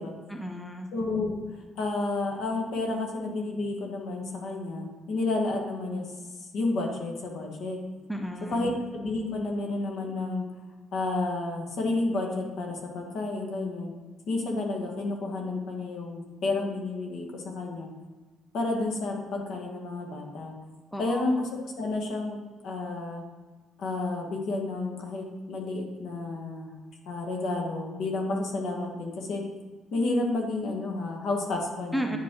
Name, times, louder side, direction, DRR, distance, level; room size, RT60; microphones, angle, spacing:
voice 1, 0.3-0.9 8.1-8.7 20.9-21.3 31.9-32.2, equal, ahead, 3 dB, 0.6 m, -33 dB
voice 2, 0.9-1.3 1.8-6.0 6.5-7.8 8.5-10.4 10.9-13.9 14.3-17.9 18.5-20.5 21.0-22.4 22.6-23.2 23.8-26.7 27.0-29.4 29.9-32.2, left 2 dB, 65° left, 1 dB, 1.5 m, -30 dB
9.2 x 5.3 x 3.8 m, 1.3 s
cardioid pair, 135°, 0 cm